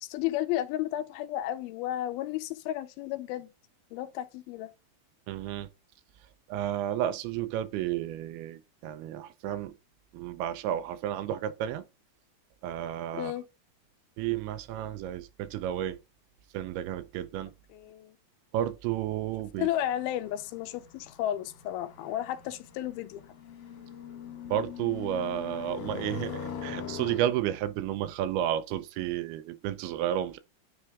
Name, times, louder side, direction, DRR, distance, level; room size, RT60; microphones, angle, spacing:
voice 1, 0.0-3.5 3.9-4.7 13.1-13.4 17.7-18.1 19.6-23.2, left 13 dB, 85° left, 2.4 m, -33 dB
voice 2, 5.3-5.7 6.5-9.7 10.1-11.8 12.6-13.3 14.2-16.0 16.5-17.5 18.5-19.7 24.5-30.4, right 11 dB, 85° right, 2.5 m, -32 dB
sound 1, 19.7-27.2, left 7 dB, 60° left, 2.6 m, -42 dB
9.6 x 3.4 x 3.5 m
omnidirectional pair, 4.4 m